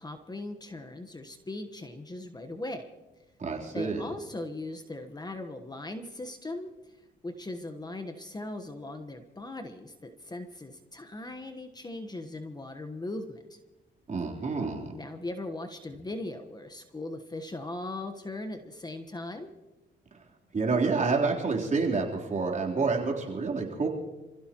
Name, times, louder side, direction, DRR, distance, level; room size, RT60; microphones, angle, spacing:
voice 1, 0.0-2.9 3.7-13.6 14.9-19.5, left 2 dB, 20° left, 6 dB, 1.2 m, -39 dB
voice 2, 3.4-4.1 14.1-15.0 20.5-23.9, right 4 dB, 40° right, -1 dB, 3.6 m, -28 dB
27.5 x 16.0 x 3.0 m, 1.1 s
cardioid pair, 90°, 20 cm